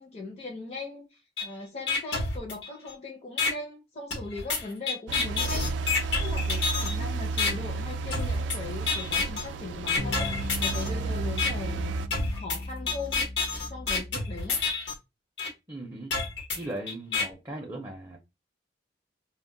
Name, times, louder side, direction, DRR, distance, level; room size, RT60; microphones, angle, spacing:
voice 1, 0.0-5.7 6.2-10.3 10.6-12.0 12.3-13.3 13.7-14.6, left 3 dB, 35° left, 0.5 m, -39 dB
sound 1, 1.4-1.5 1.9-2.9 3.4-3.5 4.1-6.9 7.4-7.5 8.1-8.6 8.9-9.4 9.9-10.9 11.4-11.5 12.1-14.9 15.4-15.5 16.1-17.2, left 4 dB, 85° left, 0.9 m, -28 dB
sound 2, 5.1-12.1, right 3 dB, 90° right, 0.3 m, -32 dB
sound 3, 10.0-14.7, left 1 dB, 65° left, 0.9 m, -37 dB
voice 2, 15.7-16.2 16.5-18.2, right 1 dB, 20° right, 0.5 m, -38 dB
2.2 x 2.0 x 3.7 m
head